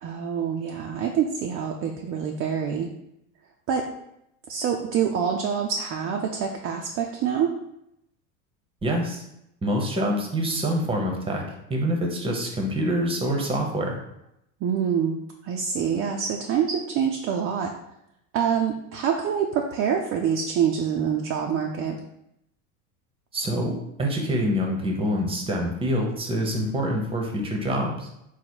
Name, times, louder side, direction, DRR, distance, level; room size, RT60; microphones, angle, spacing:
voice 1, 0.0-2.9 3.7-3.9 4.5-7.5 14.6-15.2 15.4-17.7 18.3-22.0, right 7 dB, 35° right, 2 dB, 0.4 m, -26 dB
voice 2, 8.8-9.2 9.6-11.4 11.7-14.0 23.3-23.7 24.0-28.1, equal, 15° right, 1 dB, 0.8 m, -26 dB
3.9 x 2.1 x 4.4 m, 0.80 s
supercardioid pair, 105°, 43 cm